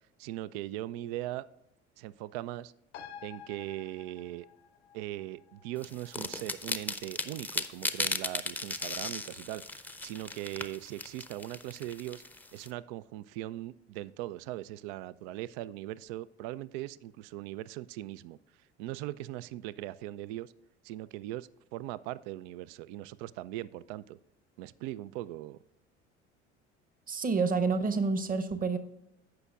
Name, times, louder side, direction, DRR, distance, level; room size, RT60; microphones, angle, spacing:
voice 1, 0.2-1.5 2.0-2.7 3.2-4.5 4.9-12.2 12.5-18.4 18.8-20.5 20.8-24.2 24.6-25.6, right 15 dB, 55° right, 18 dB, 0.5 m, -40 dB
sound 1, 2.9-9.9 10.2-10.3, left 9 dB, 65° left, 0.9 m, -53 dB
sound 2, 5.8-12.7, left 2 dB, 5° left, 0.6 m, -36 dB
voice 2, 27.1-28.8, right 4 dB, 25° right, 11 dB, 0.9 m, -28 dB
15.5 x 5.8 x 2.4 m, 0.87 s
figure-of-eight pair, 65°, 36 cm